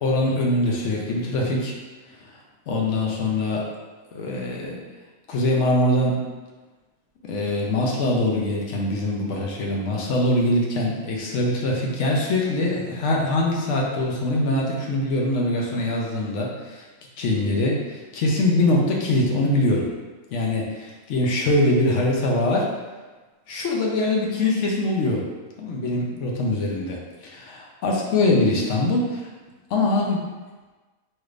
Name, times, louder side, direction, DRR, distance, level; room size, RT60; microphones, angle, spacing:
voice 1, 0.0-1.7 2.7-3.7 4.1-4.8 5.3-6.2 7.2-16.8 17.2-19.9 20.3-22.7 23.5-25.2 25.6-29.2 29.7-30.2, left 1 dB, 65° left, -1 dB, 0.9 m, -23 dB
3.2 x 3.1 x 2.4 m, 1.3 s
omnidirectional pair, 1.4 m